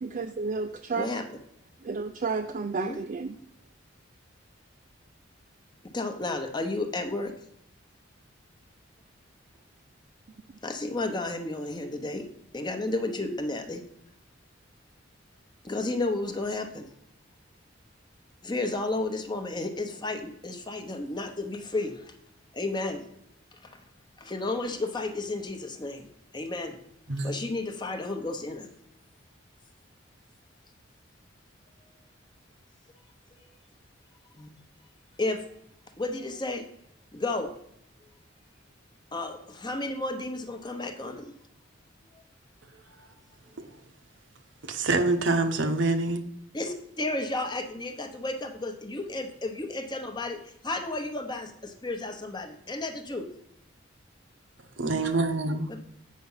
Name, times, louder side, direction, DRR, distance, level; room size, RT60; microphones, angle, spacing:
voice 1, 0.0-1.1 1.8-3.4 10.5-10.6, right 4 dB, 40° right, 0.3 m, -32 dB
voice 2, 5.9-7.3 10.6-12.2 12.5-13.8 15.6-16.9 18.4-22.1 22.5-23.0 23.6-23.8 24.2-26.1 26.3-26.8 27.2-28.7 34.4-34.5 35.2-35.4 36.0-36.6 37.1-37.5 39.1-41.3 46.5-53.3 55.7-55.8, left 2 dB, 20° left, 0.8 m, -32 dB
voice 3, 44.6-46.2 54.8-55.7, right 2 dB, 70° right, 0.9 m, -25 dB
8.5 x 5.7 x 5.5 m
head